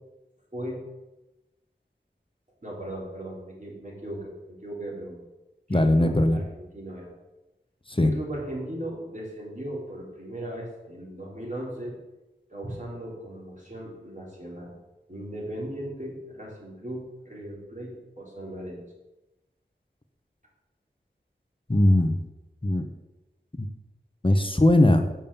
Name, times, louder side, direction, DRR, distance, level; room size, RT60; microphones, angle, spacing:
voice 1, 0.5-0.8 2.6-5.2 5.7-7.1 8.0-12.0 12.5-14.7 15.1-18.8, right 1 dB, 40° right, -4 dB, 4.0 m, -37 dB
voice 2, 5.7-6.4 7.9-8.1 21.7-22.2 22.6-22.9 23.6-23.7 24.2-25.0, left 1 dB, 25° left, 7 dB, 0.9 m, -20 dB
7.4 x 7.2 x 7.0 m, 1.0 s
wide cardioid pair, 40°, 19 cm